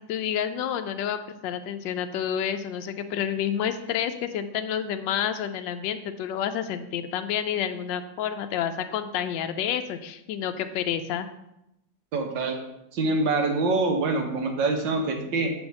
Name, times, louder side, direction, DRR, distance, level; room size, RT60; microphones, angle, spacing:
voice 1, 0.1-11.3, left 9 dB, 90° left, 8 dB, 1.3 m, -29 dB
voice 2, 12.1-12.6 12.9-15.5, right 3 dB, 85° right, 4 dB, 1.8 m, -25 dB
8.0 x 3.5 x 6.2 m, 0.84 s
omnidirectional pair, 1.9 m